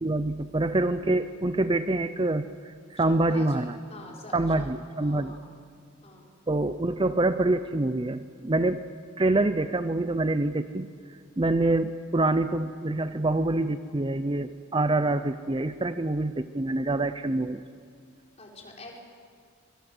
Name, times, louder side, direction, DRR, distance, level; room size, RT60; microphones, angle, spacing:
voice 1, 0.0-3.7 4.3-5.3 6.5-8.9 9.2-10.9 11.4-17.6, right 2 dB, 25° right, 11 dB, 0.5 m, -26 dB
voice 2, 3.0-5.5 6.0-6.3 18.4-19.0, left 1 dB, 30° left, -1 dB, 4.6 m, -46 dB
25.5 x 23.0 x 7.8 m, 2.2 s
head